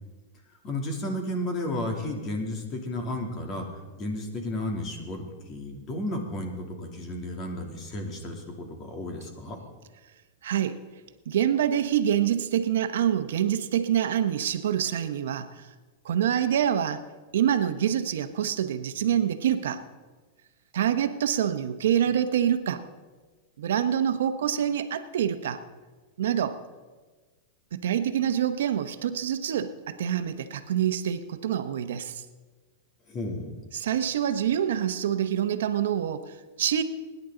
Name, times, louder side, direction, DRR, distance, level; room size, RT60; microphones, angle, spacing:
voice 1, 0.6-3.7 4.0-9.6 33.1-33.5, left 1 dB, 35° left, 2 dB, 2.9 m, -33 dB
voice 2, 10.4-10.8 11.3-15.6 16.0-17.0 17.3-19.8 20.7-22.8 23.6-25.6 26.2-26.6 27.7-32.2 33.7-36.8, right 9 dB, 85° right, 10 dB, 1.0 m, -26 dB
24.5 x 10.5 x 3.9 m, 1.3 s
supercardioid pair, 135°, 0 cm